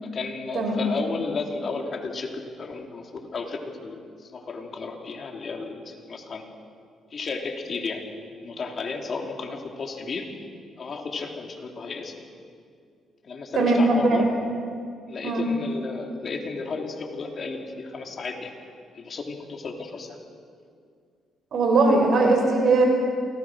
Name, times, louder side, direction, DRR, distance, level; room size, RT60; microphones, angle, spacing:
voice 1, 0.0-6.4 7.1-10.3 10.8-12.3 13.2-14.3 15.1-18.5 18.9-20.2, left 4 dB, 45° left, 2 dB, 3.2 m, -33 dB
voice 2, 0.5-0.9 13.5-14.3 15.2-15.4 21.5-22.9, right 3 dB, 60° right, 2 dB, 6.1 m, -20 dB
28.0 x 19.0 x 6.4 m, 2.2 s
cardioid pair, 90°, 0 cm